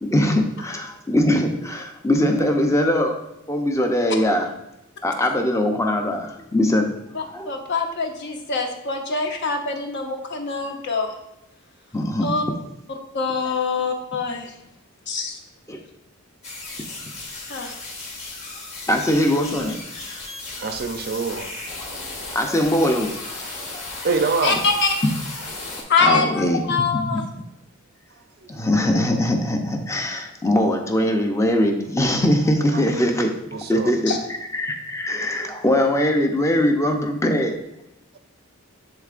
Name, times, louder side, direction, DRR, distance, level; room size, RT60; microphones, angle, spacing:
voice 1, 0.0-3.2 3.5-4.5 5.0-7.0 7.3-7.5 11.9-12.3 15.7-15.8 18.9-19.8 22.3-23.1 26.0-26.6 26.9-27.2 28.5-33.3 33.7-34.1 34.5-37.6, left 1 dB, 15° left, 3 dB, 0.6 m, -21 dB
voice 2, 7.1-11.1 12.2-12.4 12.9-14.5 15.1-15.4 17.5-17.7 24.4-24.9 25.9-27.2 34.1-34.2, left 4 dB, 55° left, 3 dB, 0.8 m, -24 dB
sound 1, 16.4-25.8, left 2 dB, 30° left, 1.5 m, -35 dB
voice 3, 20.6-21.5 24.0-24.6 28.4-28.5 33.5-33.9, right 4 dB, 45° right, 7 dB, 0.5 m, -24 dB
10.5 x 3.7 x 2.5 m, 0.88 s
head